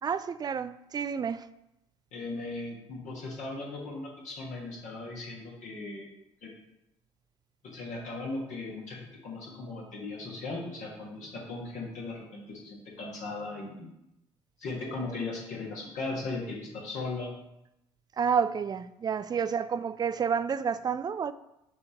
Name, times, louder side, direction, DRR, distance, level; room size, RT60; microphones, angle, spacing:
voice 1, 0.0-1.5 18.2-21.3, right 7 dB, 25° right, 0.4 m, -29 dB
voice 2, 2.1-6.1 6.4-6.5 7.6-13.9 14.6-17.3, left 3 dB, 55° left, 1.6 m, -38 dB
10.0 x 3.5 x 3.0 m
figure-of-eight pair, 50°, 15 cm